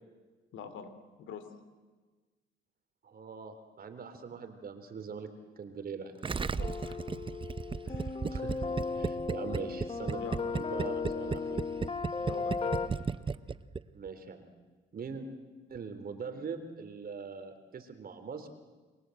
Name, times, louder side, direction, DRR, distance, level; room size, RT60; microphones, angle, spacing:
voice 1, 0.5-0.9 1.2-1.4 6.5-7.0 7.8-8.2 10.2-10.4 12.2-12.8, left 8 dB, 75° left, 10 dB, 3.1 m, -44 dB
voice 2, 3.0-5.3 5.6-6.1 8.3-8.6 8.9-11.6 13.9-14.5 14.9-15.2 15.7-18.5, right 5 dB, 50° right, 8 dB, 3.6 m, -42 dB
Gurgling, 6.2-14.1, right 5 dB, 25° right, 0.8 m, -34 dB
sound 1, 6.6-12.9, left 4 dB, 30° left, 1.6 m, -36 dB
29.0 x 22.5 x 7.9 m, 1.4 s
cardioid pair, 90°, 20 cm